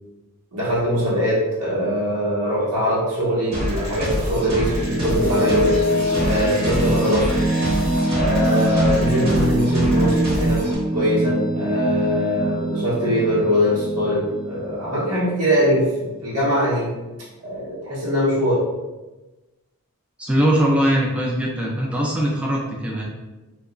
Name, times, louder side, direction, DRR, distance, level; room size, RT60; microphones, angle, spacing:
voice 1, 0.5-5.7 6.2-7.3 8.1-10.6 10.9-16.9 17.4-18.6, equal, 85° right, -8 dB, 0.9 m, -22 dB
sound 1, 3.5-10.8, equal, 45° right, 0.9 m, -27 dB
sound 2, 4.3-15.5, right 1 dB, 25° right, 0.7 m, -23 dB
voice 2, 20.2-23.0, equal, 5° right, -3 dB, 0.3 m, -21 dB
2.8 x 2.2 x 2.4 m, 1.1 s
head